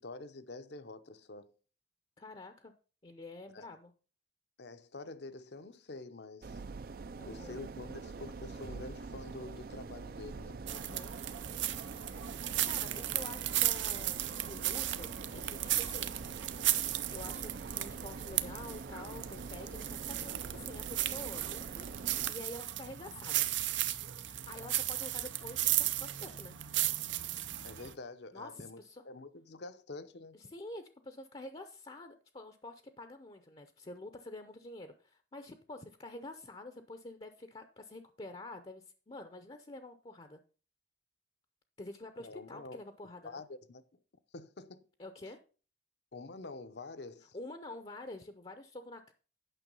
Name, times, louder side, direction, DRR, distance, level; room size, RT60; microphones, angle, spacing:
voice 1, 0.0-1.5 3.5-3.7 4.6-6.6 7.2-10.6 27.6-30.4 42.2-42.8 43.2-44.0 44.3-44.8 46.1-47.4, left 3 dB, 65° left, 0.7 m, -47 dB
voice 2, 2.2-2.7 3.0-3.9 7.2-7.6 10.7-11.2 12.3-16.2 16.4-21.9 22.3-23.5 24.2-26.5 28.3-29.0 30.3-40.4 41.8-43.4 45.0-45.4 47.3-49.1, left 2 dB, 30° left, 0.6 m, -48 dB
sound 1, 6.4-22.3, right 4 dB, 50° right, 0.4 m, -45 dB
sound 2, 10.7-27.9, right 13 dB, 85° right, 0.7 m, -35 dB
9.1 x 6.1 x 5.4 m
head